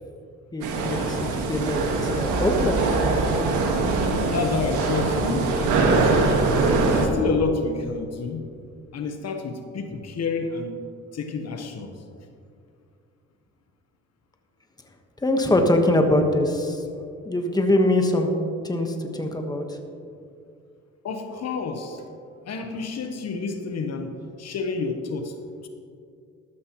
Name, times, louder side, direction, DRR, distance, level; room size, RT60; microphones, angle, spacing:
voice 1, 0.5-3.0 15.2-16.8 17.2-18.3 18.6-19.8, left 1 dB, 15° left, 3 dB, 1.3 m, -23 dB
sound 1, 0.6-7.1, right 3 dB, 85° right, 1.6 m, -22 dB
voice 2, 4.3-6.1 6.9-8.5 8.9-10.8 11.1-12.0 21.0-22.0 22.4-25.4 25.6-25.7, left 4 dB, 55° left, 5 dB, 1.1 m, -29 dB
13.0 x 12.5 x 3.1 m, 2.4 s
cardioid pair, 90°, 30 cm